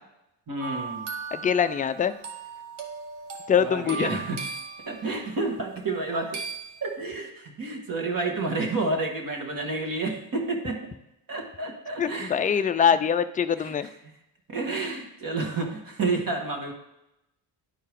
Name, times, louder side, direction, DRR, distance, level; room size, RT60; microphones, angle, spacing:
voice 1, 0.5-1.1 3.6-4.4 4.9-6.4 6.8-10.9 11.3-12.6 13.5-13.9 14.5-16.7, right 3 dB, 45° right, 1 dB, 1.8 m, -30 dB
sound 1, 0.6-5.4 6.3-6.9, right 4 dB, 65° right, 1.2 m, -37 dB
voice 2, 1.3-2.1 3.5-4.1 12.0-13.9, left 7 dB, 20° left, 10 dB, 0.3 m, -23 dB
11.0 x 4.5 x 3.6 m, 0.85 s
cardioid pair, 85°, 47 cm